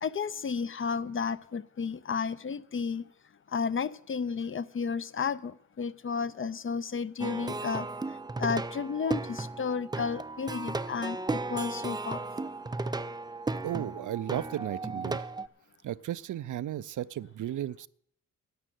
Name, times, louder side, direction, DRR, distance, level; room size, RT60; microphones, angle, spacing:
voice 1, 0.0-3.0 3.5-7.9 8.4-12.2, left 5 dB, 40° left, 16 dB, 0.5 m, -32 dB
Plucked string instrument, 7.2-15.5, right 3 dB, 15° right, 0.4 m, -35 dB
voice 2, 13.6-15.2 15.8-17.9, right 12 dB, 65° right, 18 dB, 0.5 m, -34 dB
11.5 x 7.6 x 9.1 m, 0.64 s
cardioid pair, 100°, 33 cm